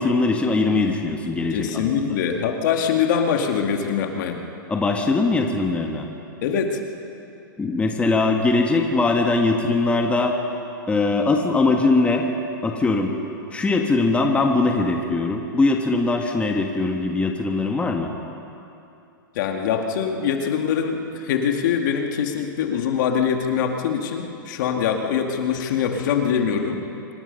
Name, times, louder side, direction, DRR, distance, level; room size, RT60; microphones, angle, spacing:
voice 1, 0.0-2.1 4.7-6.1 7.6-10.3 10.9-12.3 12.6-13.1 13.5-18.1, left 3 dB, 10° left, 2 dB, 1.5 m, -21 dB
voice 2, 1.5-4.4 6.4-6.8 19.3-26.8, left 7 dB, 60° left, 3 dB, 2.3 m, -23 dB
26.0 x 19.0 x 5.5 m, 2.7 s
hypercardioid pair, 135°, 12 cm